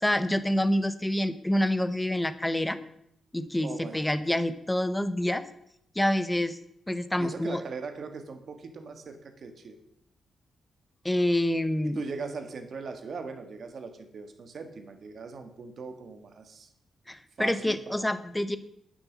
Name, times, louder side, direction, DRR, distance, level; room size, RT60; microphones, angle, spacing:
voice 1, 0.0-2.8 3.3-5.4 5.9-6.6 6.9-7.6 11.0-12.0 17.1-18.6, left 1 dB, 10° left, 12 dB, 0.8 m, -27 dB
voice 2, 3.6-4.1 7.2-9.8 11.8-16.7 17.4-18.1, right 4 dB, 55° right, 7 dB, 1.7 m, -40 dB
9.6 x 7.2 x 7.3 m, 0.75 s
cardioid pair, 110°, 0 cm